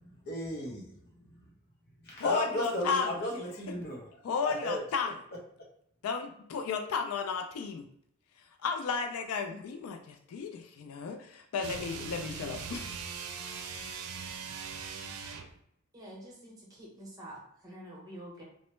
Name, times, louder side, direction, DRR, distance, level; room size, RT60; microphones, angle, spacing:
voice 1, 0.0-0.9 2.0-4.1 4.4-4.8, equal, 50° left, -3 dB, 0.8 m, -34 dB
voice 2, 2.2-3.1 4.2-5.1 6.0-7.8 8.4-12.9, left 5 dB, 75° left, 5 dB, 0.3 m, -34 dB
sound 1, 11.6-15.6, right 5 dB, 90° right, 0.4 m, -40 dB
voice 3, 15.9-18.4, right 1 dB, 15° right, -4 dB, 0.9 m, -47 dB
3.0 x 2.1 x 3.1 m, 0.71 s
head